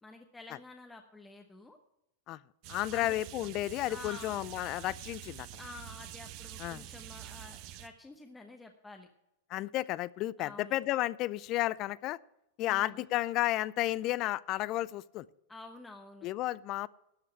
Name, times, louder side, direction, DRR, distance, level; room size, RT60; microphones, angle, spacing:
voice 1, 0.0-1.8 2.9-3.2 3.9-4.3 5.6-9.1 10.4-10.8 12.6-13.1 15.5-16.3, left 3 dB, 10° left, 4 dB, 0.9 m, -50 dB
sound 1, 2.6-7.9, right 13 dB, 45° right, 0.9 m, -47 dB
voice 2, 2.7-5.5 6.6-6.8 9.5-12.2 12.6-15.3 16.2-16.9, left 16 dB, 40° left, 21 dB, 0.4 m, -32 dB
12.5 x 5.5 x 8.5 m, 0.86 s
hypercardioid pair, 130°, 0 cm